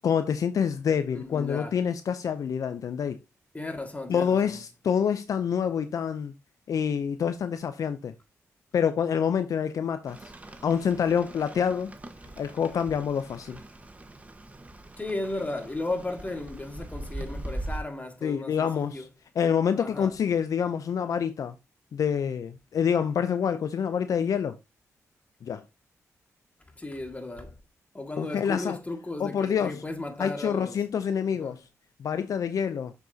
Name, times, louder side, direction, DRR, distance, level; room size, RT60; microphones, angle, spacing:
voice 1, 0.0-3.2 4.1-6.3 6.7-8.1 8.7-10.3 10.6-11.9 12.4-13.6 18.2-19.1 19.4-21.5 21.9-24.6 25.4-25.6 28.2-28.8 29.2-29.8 30.2-31.6 32.0-32.9, left 7 dB, 65° left, 0.5 m, -27 dB
voice 2, 1.1-1.8 3.5-4.6 15.0-19.1 19.8-20.1 26.8-27.5 27.9-30.8 31.3-31.6, left 2 dB, 25° left, 2.0 m, -35 dB
Rain, 10.1-17.8, right 1 dB, 25° right, 1.2 m, -41 dB
7.0 x 6.5 x 2.8 m
cardioid pair, 55°, 6 cm